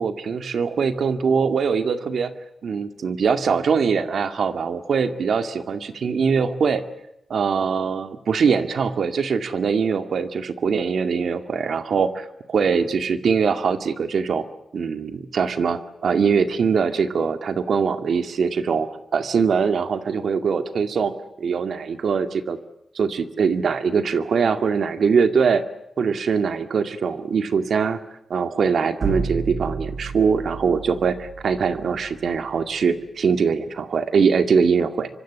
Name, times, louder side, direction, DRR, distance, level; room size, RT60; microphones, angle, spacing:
voice 1, 0.0-2.3 2.6-6.8 7.3-14.5 14.7-22.6 22.9-25.6 26.0-28.0 28.3-35.1, right 6 dB, 75° right, 9 dB, 2.1 m, -22 dB
sound 1, 29.0-32.9, right 4 dB, 50° right, 5.9 m, -32 dB
25.5 x 25.5 x 8.2 m, 0.81 s
wide cardioid pair, 135°, 0 cm